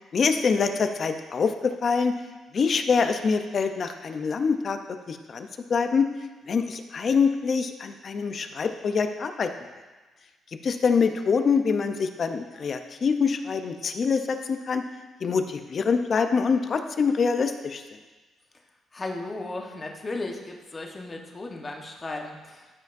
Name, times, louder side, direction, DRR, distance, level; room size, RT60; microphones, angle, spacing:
voice 1, 0.1-2.2 2.5-6.1 6.5-9.5 10.6-14.8 15.2-17.8, left 5 dB, 50° left, 7 dB, 0.6 m, -25 dB
voice 2, 18.9-22.7, left 2 dB, 30° left, 1 dB, 1.1 m, -35 dB
13.0 x 5.1 x 2.6 m, 1.3 s
cardioid pair, 90°, 0 cm